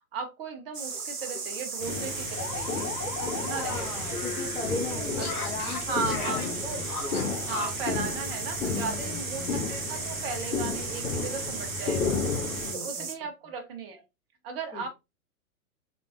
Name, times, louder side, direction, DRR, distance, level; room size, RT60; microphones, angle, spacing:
voice 1, 0.1-2.9 3.4-4.0 5.2-6.4 6.6-6.8 7.4-12.2 12.7-14.0 14.4-14.9, right 4 dB, 40° right, 1.2 m, -36 dB
sound 1, 0.7-13.2, right 5 dB, 75° right, 1.0 m, -36 dB
sound 2, 0.9-1.0 1.3-1.4 1.8-7.9, left 4 dB, 80° left, 1.4 m, -37 dB
sound 3, 1.8-12.7, left 5 dB, 60° left, 1.4 m, -33 dB
voice 2, 3.2-7.0 8.7-9.7 12.5-13.1 14.7-14.9, left 3 dB, 5° left, 0.5 m, -38 dB
4.3 x 3.4 x 2.7 m
figure-of-eight pair, 115°, 45 cm